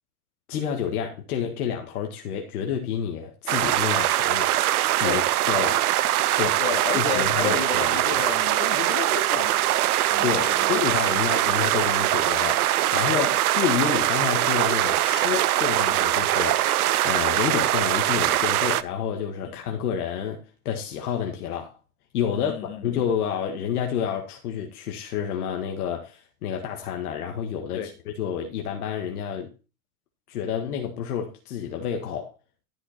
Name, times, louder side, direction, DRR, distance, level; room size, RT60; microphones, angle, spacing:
voice 1, 0.5-4.5 5.0-5.9 6.4-6.6 7.0-8.2 10.2-21.8 22.1-29.5 30.3-32.3, left 8 dB, 75° left, 1.8 m, -29 dB
sound 1, 3.5-18.8, right 14 dB, 75° right, 0.8 m, -22 dB
voice 2, 6.6-11.3 13.1-13.3 19.4-19.6 22.3-22.8 27.7-27.9, left 10 dB, 50° left, 2.5 m, -33 dB
12.5 x 6.0 x 4.3 m
supercardioid pair, 150°, 45 cm